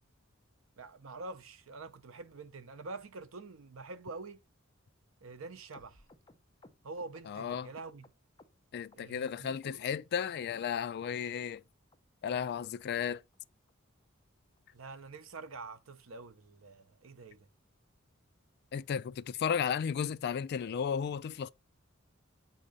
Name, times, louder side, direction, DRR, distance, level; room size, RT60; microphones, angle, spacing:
voice 1, 0.8-4.4 5.2-6.0 6.8-8.1 8.9-9.8 14.7-17.5, right 3 dB, 80° right, 0.7 m, -46 dB
sound 1, 5.7-9.0 9.3-9.9 10.2-10.7 11.0-11.1 11.4-11.6 11.9-12.0 12.3-12.5 12.8-12.9 13.2-13.4 13.7-13.8 14.0-14.2 14.6-14.7 14.9-15.1 15.5-15.6, left 2 dB, 20° left, 0.7 m, -61 dB
voice 2, 7.3-7.7 8.7-11.6 12.2-13.2 18.7-21.5, left 7 dB, 55° left, 0.3 m, -34 dB
7.4 x 2.8 x 4.9 m
head